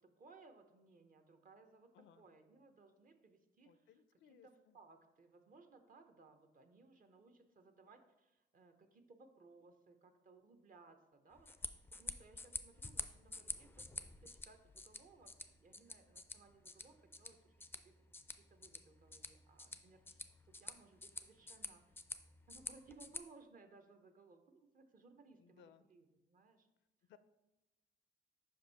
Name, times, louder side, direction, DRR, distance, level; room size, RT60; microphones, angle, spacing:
voice 1, 0.0-1.9 2.2-3.9 4.2-13.9 14.2-17.9 18.3-22.1 22.5-26.7, right 3 dB, 45° right, 7 dB, 0.8 m, -63 dB
voice 2, 1.9-2.3 3.6-4.8 25.4-25.9 27.1-27.2, left 8 dB, 70° left, 13 dB, 0.5 m, -64 dB
sound 1, 11.3-23.2, left 3 dB, 10° left, 0.4 m, -49 dB
5.3 x 5.2 x 4.1 m, 1.1 s
cardioid pair, 90°, 20 cm